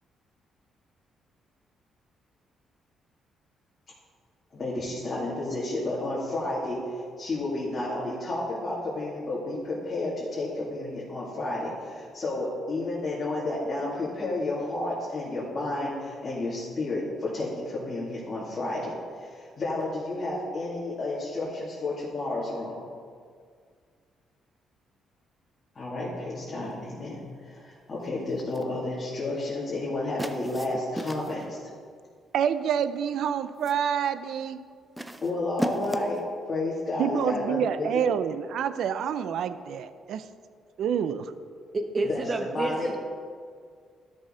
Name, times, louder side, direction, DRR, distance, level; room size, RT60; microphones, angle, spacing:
voice 1, 4.5-22.8 25.7-31.6 35.2-36.2 36.5-38.0 42.0-42.2 42.5-42.9, left 2 dB, 35° left, -8 dB, 2.3 m, -31 dB
sound 1, 28.4-28.8 30.2-31.5 32.6-32.9 33.3-33.9 35.0-36.3, right 1 dB, 5° right, 0.6 m, -36 dB
voice 2, 32.3-34.6 37.0-40.2 40.8-41.3, right 8 dB, 75° right, 12 dB, 0.4 m, -27 dB
voice 3, 41.7-43.0, right 2 dB, 35° right, 5 dB, 1.0 m, -29 dB
12.5 x 6.3 x 3.8 m, 2.1 s
cardioid pair, 90°, 0 cm